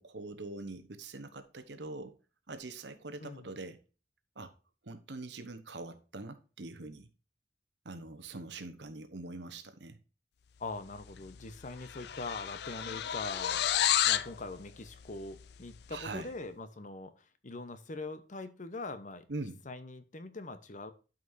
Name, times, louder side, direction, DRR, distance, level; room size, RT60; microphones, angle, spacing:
voice 1, 0.0-2.2 2.5-3.8 4.4-4.5 4.8-7.1 7.8-10.0 15.9-16.3 19.3-19.6, right 3 dB, 80° right, 1.0 m, -43 dB
voice 2, 3.2-3.5 10.6-13.7 14.1-20.9, left 3 dB, 45° left, 0.9 m, -42 dB
sound 1, 11.1-11.4 11.6-14.3, left 11 dB, 65° left, 0.4 m, -30 dB
12.0 x 5.4 x 2.6 m
head